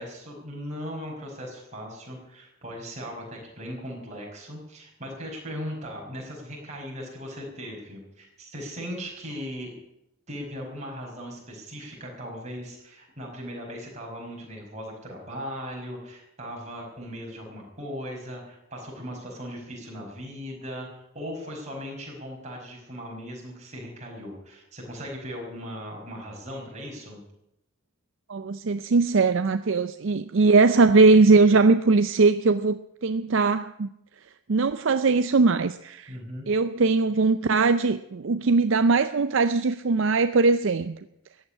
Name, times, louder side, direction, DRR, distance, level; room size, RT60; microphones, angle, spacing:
voice 1, 0.0-9.8 10.3-27.2 36.1-36.5, equal, 30° right, -2 dB, 5.4 m, -38 dB
voice 2, 28.3-33.9 34.5-36.2 36.5-40.9, right 3 dB, 60° right, 11 dB, 0.5 m, -20 dB
14.5 x 8.8 x 9.7 m, 0.83 s
head